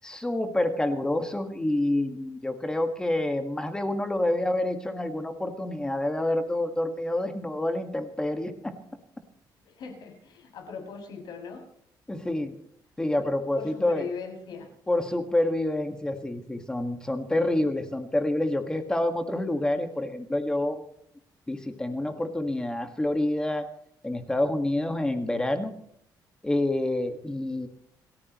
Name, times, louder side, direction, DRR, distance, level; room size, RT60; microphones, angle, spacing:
voice 1, 0.0-8.7 12.1-12.5 13.0-14.1 14.9-20.8 21.5-23.7 24.0-25.7 26.4-27.7, left 1 dB, 10° left, 7 dB, 1.6 m, -28 dB
voice 2, 9.6-11.6 13.1-13.2 13.5-14.7 17.6-17.7, left 5 dB, 65° left, 3 dB, 6.4 m, -40 dB
28.5 x 13.5 x 3.0 m, 0.66 s
cardioid pair, 155°, 8 cm